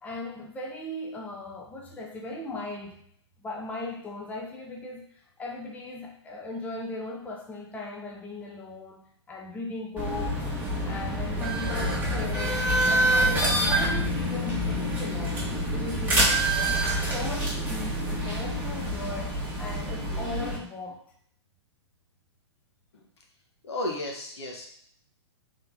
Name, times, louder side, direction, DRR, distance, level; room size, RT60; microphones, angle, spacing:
voice 1, 0.0-3.0 3.4-10.5 10.9-15.4 15.7-21.0, left 2 dB, 10° left, -1 dB, 0.6 m, -38 dB
sound 1, 10.0-20.6, right 1 dB, 10° right, 1.1 m, -26 dB
voice 2, 23.6-24.7, left 1 dB, 70° left, 1 dB, 1.0 m, -33 dB
3.6 x 2.8 x 3.5 m, 0.66 s
hypercardioid pair, 120°, 15 cm